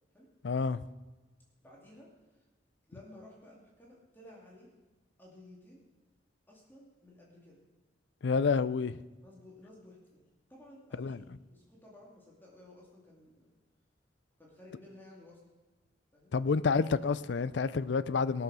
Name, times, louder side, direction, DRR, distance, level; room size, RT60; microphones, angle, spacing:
voice 1, 0.4-0.8 8.2-9.0 11.0-11.2 16.3-18.4, left 5 dB, 70° left, 0.5 m, -29 dB
voice 2, 1.6-2.4 2.9-4.7 5.2-5.8 6.5-7.6 9.2-13.5 14.4-15.4 16.1-16.3, left 1 dB, 10° left, 2.4 m, -55 dB
18.0 x 7.0 x 6.1 m
head